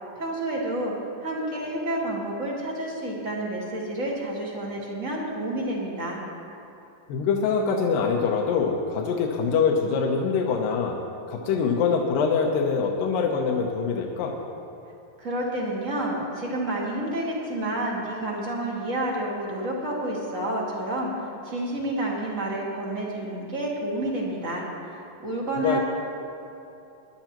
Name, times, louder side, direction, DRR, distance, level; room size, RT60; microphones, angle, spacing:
voice 1, 0.2-0.9 1.2-6.2 15.2-21.1 21.4-25.8, right 1 dB, 30° right, -3 dB, 1.5 m, -29 dB
voice 2, 7.1-11.0 11.3-14.4 25.6-25.8, left 5 dB, 80° left, 0 dB, 2.5 m, -24 dB
21.0 x 11.5 x 3.0 m, 2.9 s
omnidirectional pair, 3.9 m